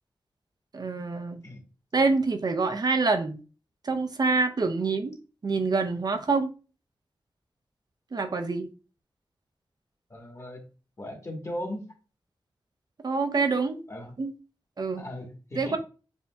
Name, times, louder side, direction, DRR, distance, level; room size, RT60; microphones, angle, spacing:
voice 1, 0.7-1.4 1.9-3.4 3.8-6.5 8.1-8.7 13.0-13.8 14.2-14.3 14.8-15.0 15.6-15.8, right 4 dB, 50° right, 0.6 m, -26 dB
voice 2, 10.1-10.6 11.0-11.9 13.9-14.2 15.0-15.8, left 1 dB, 35° left, 1.4 m, -37 dB
6.9 x 2.6 x 2.2 m
wide cardioid pair, 85°, 9 cm